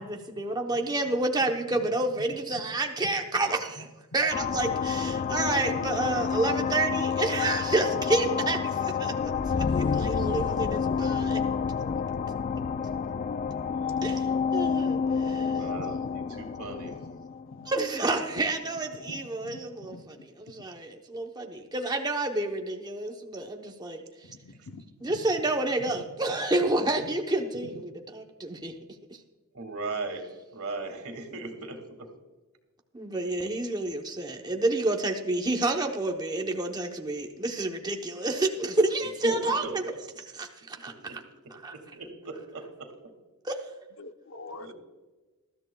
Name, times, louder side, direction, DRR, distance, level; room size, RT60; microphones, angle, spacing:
voice 1, 0.0-3.9 4.1-11.4 14.0-14.3 14.5-15.6 17.7-24.0 25.0-28.7 32.9-39.9 40.3-41.2 41.5-41.8 43.4-43.6, right 2 dB, 20° right, 3 dB, 0.8 m, -29 dB
sound 1, 4.3-18.5, left 6 dB, 35° left, 0.3 m, -29 dB
voice 2, 14.8-17.0 29.5-30.3 30.5-32.1 39.2-39.7 40.8-41.2 41.7-42.9 44.6-44.7, right 3 dB, 70° right, 5 dB, 2.1 m, -38 dB
voice 3, 15.8-16.1 17.6-17.7 19.1-20.0 24.3-24.8 44.0-44.7, left 2 dB, 60° left, 8 dB, 0.8 m, -45 dB
20.0 x 13.0 x 2.3 m, 1.2 s
head